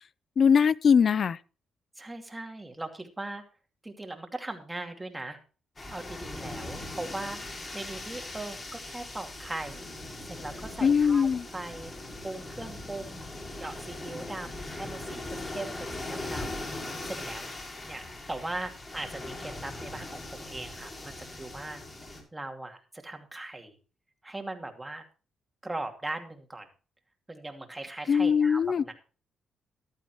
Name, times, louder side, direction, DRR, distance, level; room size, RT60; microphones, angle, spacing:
voice 1, 0.4-1.4 10.8-11.5 28.1-28.8, left 6 dB, 55° left, 0.5 m, -21 dB
voice 2, 2.0-3.4 3.8-5.4 5.9-7.4 7.7-9.9 10.2-11.9 12.2-13.3 13.6-16.6 17.0-17.4 17.9-21.8 22.1-23.8 24.2-25.0 25.6-26.7 27.3-28.9, right 2 dB, 15° right, 2.5 m, -39 dB
sound 1, 5.8-22.2, left 2 dB, 30° left, 6.1 m, -40 dB
14.5 x 12.0 x 3.0 m
cardioid pair, 85°, 0 cm